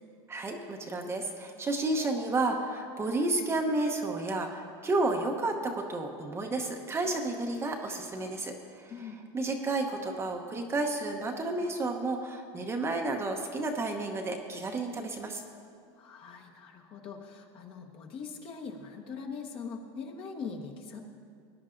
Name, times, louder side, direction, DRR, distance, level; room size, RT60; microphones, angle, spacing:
voice 1, 0.3-8.9 9.3-15.4, right 2 dB, 20° right, 3 dB, 0.8 m, -31 dB
voice 2, 8.9-9.2 16.0-21.0, left 5 dB, 40° left, 2 dB, 1.2 m, -42 dB
19.5 x 10.0 x 2.6 m, 2.2 s
supercardioid pair, 140°, 14 cm